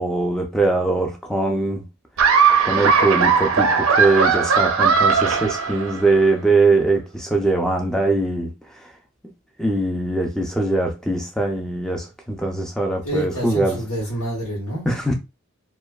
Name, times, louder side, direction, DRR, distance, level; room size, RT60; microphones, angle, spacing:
voice 1, 0.0-1.8 2.7-8.9 9.6-13.8 14.9-15.1, right 2 dB, ahead, 0.3 m, -21 dB
Laughter, 2.2-6.2, right 5 dB, 70° right, 0.4 m, -18 dB
voice 2, 13.0-14.9, right 1 dB, 85° left, 1.0 m, -27 dB
2.6 x 2.2 x 2.2 m
head